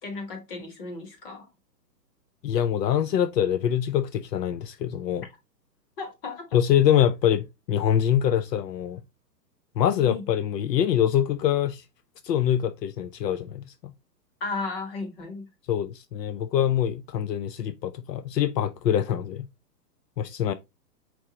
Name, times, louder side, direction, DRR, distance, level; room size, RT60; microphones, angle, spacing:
voice 1, 0.0-1.5 6.0-6.6 10.0-10.2 14.4-15.5, left 3 dB, 35° left, 1.2 m, -34 dB
voice 2, 2.4-5.3 6.5-9.0 9.8-11.8 12.2-13.9 15.7-19.5 20.2-20.5, left 10 dB, 75° left, 0.6 m, -24 dB
4.6 x 3.7 x 2.8 m
hypercardioid pair, 160°, 50 cm